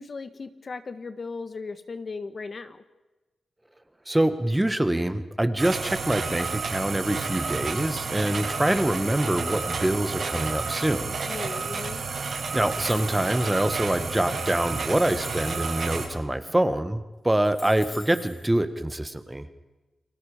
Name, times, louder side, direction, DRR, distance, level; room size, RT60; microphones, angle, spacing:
voice 1, 0.0-2.8 11.2-12.0, left 4 dB, 45° left, 10 dB, 1.5 m, -37 dB
voice 2, 4.1-11.1 12.1-19.4, right 1 dB, 10° right, 10 dB, 1.7 m, -25 dB
sound 1, 5.6-16.1, right 4 dB, 65° right, 7.3 m, -31 dB
sound 2, 12.7-13.6 14.3-14.4 14.9-15.8 16.8-16.9 17.3-18.5, left 1 dB, 20° left, 5.0 m, -46 dB
30.0 x 22.5 x 5.2 m, 1.1 s
wide cardioid pair, 95°, 0 cm